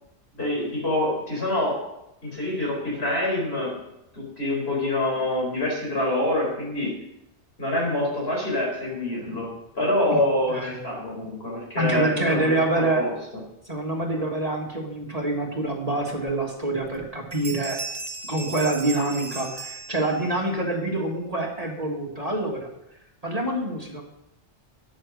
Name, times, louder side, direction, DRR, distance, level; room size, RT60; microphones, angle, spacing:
voice 1, 0.3-1.9 2.2-3.8 4.1-7.0 7.6-12.6 12.9-13.1, left 1 dB, 60° left, -2 dB, 5.0 m, -26 dB
voice 2, 11.8-13.1 13.7-17.8 18.3-22.7 23.2-24.0, right 2 dB, 30° right, 0 dB, 1.8 m, -26 dB
sound 1, 16.9-17.0 17.3-20.5, right 3 dB, 50° right, 2.0 m, -37 dB
13.5 x 8.7 x 6.4 m, 0.85 s
omnidirectional pair, 1.2 m